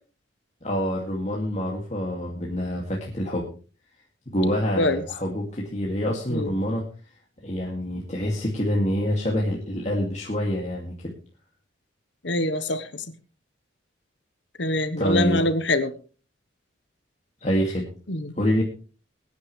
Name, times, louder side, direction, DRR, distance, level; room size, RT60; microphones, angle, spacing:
voice 1, 0.6-3.5 4.3-6.8 7.4-11.1 15.0-15.5 17.4-17.8 18.4-18.6, equal, 35° left, -2 dB, 2.3 m, -26 dB
voice 2, 12.2-13.0 14.6-15.9 18.1-18.3, left 1 dB, 70° left, 11 dB, 1.2 m, -24 dB
22.0 x 9.8 x 3.3 m, 0.37 s
head